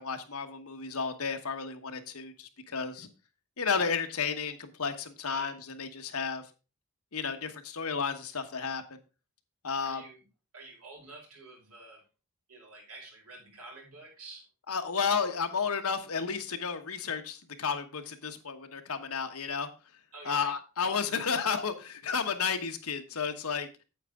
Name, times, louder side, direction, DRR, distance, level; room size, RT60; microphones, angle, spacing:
voice 1, 0.0-3.1 3.6-6.5 7.1-8.8 9.6-10.0 14.7-19.7 20.2-23.7, left 5 dB, 85° left, 7 dB, 1.2 m, -32 dB
voice 2, 5.2-5.5 9.8-10.2 10.5-12.0 12.5-14.5 20.1-20.5, right 2 dB, 90° right, -1 dB, 5.0 m, -48 dB
9.0 x 8.0 x 3.7 m, 0.31 s
head